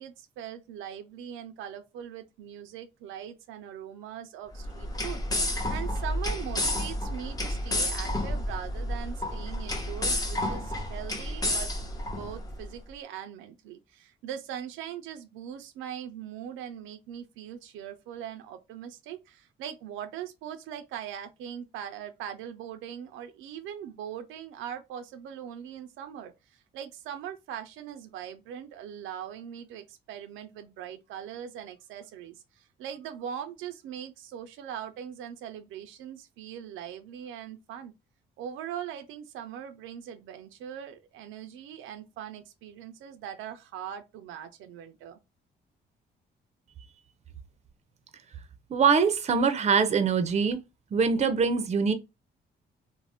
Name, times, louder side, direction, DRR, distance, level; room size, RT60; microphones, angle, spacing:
voice 1, 0.0-5.2 5.7-11.7 12.0-37.9 38.4-45.2, right 9 dB, 90° right, 0.4 m, -41 dB
sound 1, 4.5-12.7, left 1 dB, 20° left, 0.7 m, -31 dB
voice 2, 48.7-50.6 50.9-51.9, right 5 dB, 35° right, 0.5 m, -23 dB
2.5 x 2.0 x 3.4 m
cardioid pair, 90°, 20 cm